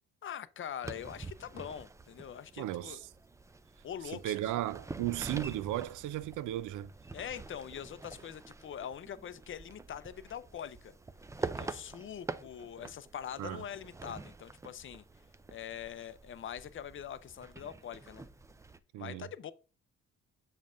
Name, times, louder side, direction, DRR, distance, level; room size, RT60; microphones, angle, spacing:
voice 1, 0.2-3.0 3.8-4.5 7.1-10.9 11.4-15.0 15.5-18.3 19.0-19.5, left 9 dB, 40° left, 0.5 m, -43 dB
sound 1, 0.8-18.8, right 3 dB, 10° right, 0.3 m, -46 dB
voice 2, 2.6-3.1 4.2-6.9 13.4-13.6 18.9-19.3, right 14 dB, 80° right, 0.5 m, -35 dB
7.2 x 5.4 x 2.5 m
cardioid pair, 90°, 30 cm